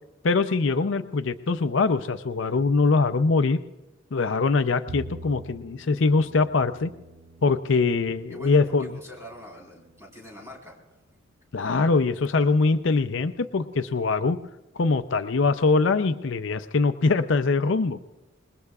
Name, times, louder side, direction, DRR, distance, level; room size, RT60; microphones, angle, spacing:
voice 1, 0.2-3.6 4.1-6.9 7.4-8.9 11.5-14.4 14.8-18.0, left 4 dB, 65° left, 10 dB, 0.5 m, -23 dB
Bowed string instrument, 4.9-11.2, right 2 dB, 60° right, 1.2 m, -46 dB
voice 2, 8.3-11.0, equal, 15° right, -1 dB, 4.1 m, -45 dB
26.0 x 21.0 x 2.4 m, 1.0 s
head